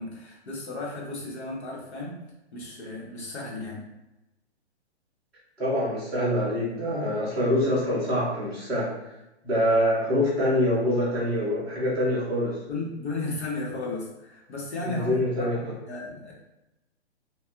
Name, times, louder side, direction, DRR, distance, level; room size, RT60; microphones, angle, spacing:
voice 1, 0.0-2.2 2.5-3.9 12.7-16.3, left 2 dB, 75° left, -3 dB, 1.4 m, -34 dB
voice 2, 5.6-8.9 9.4-12.5 14.8-15.7, equal, ahead, -18 dB, 0.5 m, -25 dB
4.2 x 2.6 x 2.4 m, 0.94 s
hypercardioid pair, 155°, 34 cm